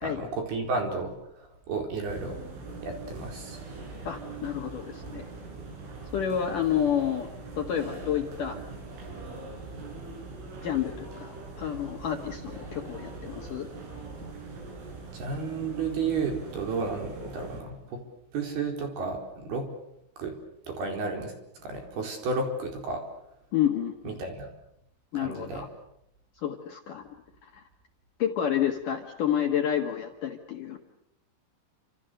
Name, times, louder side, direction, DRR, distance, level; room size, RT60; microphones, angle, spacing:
voice 1, 0.0-2.4 2.8-3.6 15.1-18.0 18.3-19.7 20.2-20.3 20.7-23.0 24.0-24.5 25.2-25.6, right 4 dB, 55° right, 3 dB, 6.1 m, -32 dB
sound 1, 2.1-17.6, right 3 dB, 90° right, 8.4 m, -42 dB
voice 2, 4.0-5.3 6.1-7.3 7.6-8.6 10.6-13.7 23.5-24.2 25.1-25.7 26.4-27.1 27.4-27.6 28.2-30.8, left 9 dB, 55° left, 3 dB, 2.6 m, -29 dB
29.5 x 27.0 x 6.8 m, 0.79 s
omnidirectional pair, 5.6 m